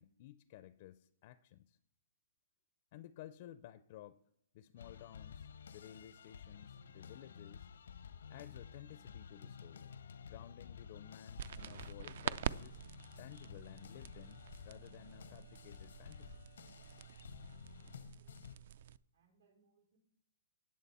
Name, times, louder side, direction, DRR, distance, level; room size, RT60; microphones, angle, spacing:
voice 1, 0.0-1.8 2.9-4.2 4.5-7.7 8.3-10.0 10.3-12.8 13.2-16.4, left 12 dB, 40° left, 15 dB, 0.4 m, -55 dB
sound 1, 4.8-18.6, left 7 dB, 90° left, 0.7 m, -53 dB
sound 2, 11.4-19.0, right 9 dB, 55° right, 0.3 m, -46 dB
voice 2, 18.2-18.7 19.1-20.0, right 5 dB, 90° right, 1 dB, 4.8 m, -74 dB
18.0 x 7.2 x 4.2 m, 0.75 s
hypercardioid pair, 165°, 0 cm